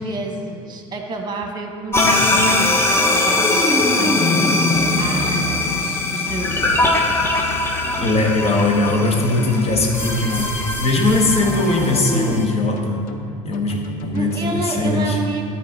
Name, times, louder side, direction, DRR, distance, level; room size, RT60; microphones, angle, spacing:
voice 1, 0.0-4.7 5.0-6.5 14.1-15.4, right 3 dB, 25° right, 3 dB, 1.3 m, -29 dB
sound 1, 1.9-12.5, left 2 dB, 15° left, 0.9 m, -20 dB
voice 2, 2.0-2.4 8.0-13.0 13.4-15.2, left 2 dB, 35° left, 1 dB, 1.4 m, -20 dB
sound 2, 4.7-5.8 6.3-6.9 7.8-10.8 11.2-11.9 12.8-14.6, left 5 dB, 55° left, 0.7 m, -35 dB
12.5 x 4.3 x 3.6 m, 2.4 s
hypercardioid pair, 75°, 17 cm